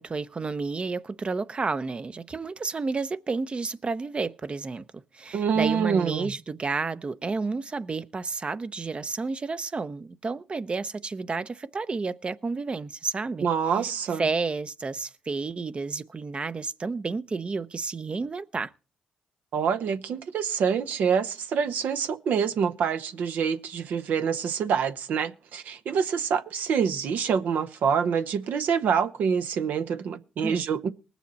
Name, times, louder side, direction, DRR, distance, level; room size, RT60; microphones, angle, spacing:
voice 1, 0.0-13.5 14.1-18.7 30.4-30.6, right 4 dB, 40° right, 0.7 m, -31 dB
voice 2, 5.3-6.3 13.4-14.2 19.5-30.9, right 7 dB, 75° right, 0.8 m, -26 dB
20.0 x 7.1 x 4.1 m
supercardioid pair, 55°, 3 cm